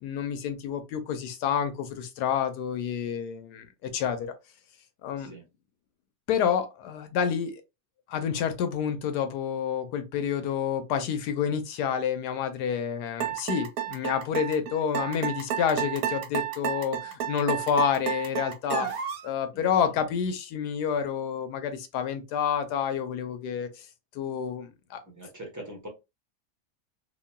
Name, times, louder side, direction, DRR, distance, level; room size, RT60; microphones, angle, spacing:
voice 1, 0.0-4.3 5.0-5.3 6.3-7.6 8.1-18.9 19.2-23.9 24.1-25.0, left 7 dB, 85° left, 1.2 m, -29 dB
sound 1, 13.2-19.3, right 10 dB, 70° right, 1.0 m, -31 dB
voice 2, 19.5-20.0 25.0-25.9, right 1 dB, 15° right, 0.6 m, -43 dB
2.9 x 2.5 x 2.2 m
omnidirectional pair, 1.7 m